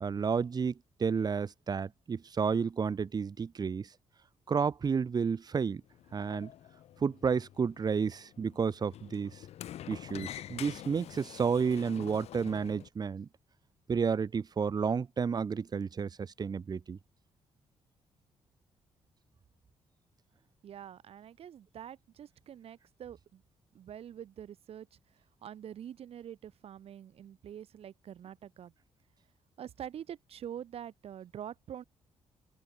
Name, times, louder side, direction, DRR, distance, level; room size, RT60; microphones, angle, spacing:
voice 1, 0.0-0.7 1.0-3.9 4.5-5.8 6.1-6.5 7.0-9.4 9.9-13.3 13.9-17.0, right 6 dB, 40° right, 1.1 m, -31 dB
Sliding door, 5.8-12.9, left 12 dB, 75° left, 1.1 m, -47 dB
voice 2, 20.6-23.4 23.7-24.9 25.4-28.7 29.6-31.8, right 9 dB, 65° right, 2.3 m, -45 dB
open air
cardioid pair, 95°, 11 cm